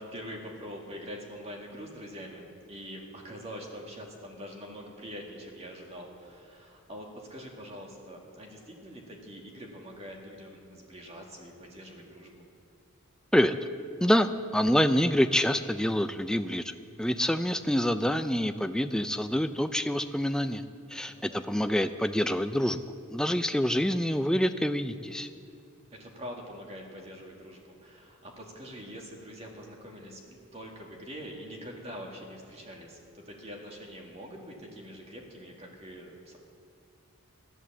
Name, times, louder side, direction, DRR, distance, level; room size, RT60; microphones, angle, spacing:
voice 1, 0.0-12.5 21.1-21.5 25.5-25.6 25.9-36.4, equal, 30° right, 0 dB, 2.0 m, -44 dB
voice 2, 14.0-20.6 20.9-22.8 23.1-25.3, equal, 5° left, 9 dB, 0.4 m, -26 dB
13.5 x 11.0 x 7.3 m, 2.5 s
head